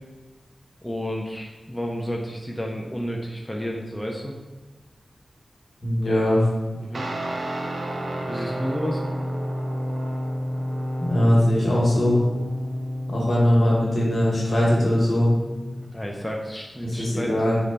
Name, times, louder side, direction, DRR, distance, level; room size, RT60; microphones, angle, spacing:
voice 1, 0.8-4.3 6.8-7.1 8.3-9.0 15.9-17.6, equal, 5° left, -1 dB, 0.3 m, -31 dB
voice 2, 5.8-6.5 11.0-12.2 13.1-15.3 16.8-17.6, left 1 dB, 75° left, -5 dB, 1.0 m, -20 dB
Guitar, 6.9-15.9, equal, 70° right, 0.4 m, -30 dB
3.8 x 2.1 x 3.3 m, 1.2 s
wide cardioid pair, 115°, 0 cm